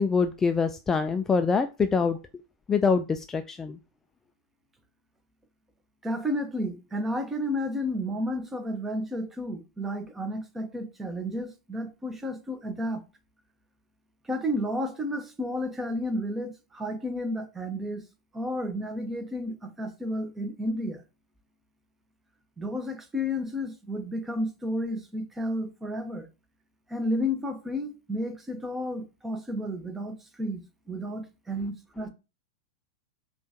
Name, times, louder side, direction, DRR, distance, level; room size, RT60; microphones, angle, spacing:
voice 1, 0.0-2.2 2.7-3.8, left 5 dB, 15° left, 0.3 m, -25 dB
voice 2, 6.0-13.0 14.2-18.0 18.3-21.0 22.6-26.3 26.9-32.1, left 1 dB, 10° right, 0.8 m, -32 dB
5.5 x 2.5 x 2.7 m
hypercardioid pair, 105°, 2 cm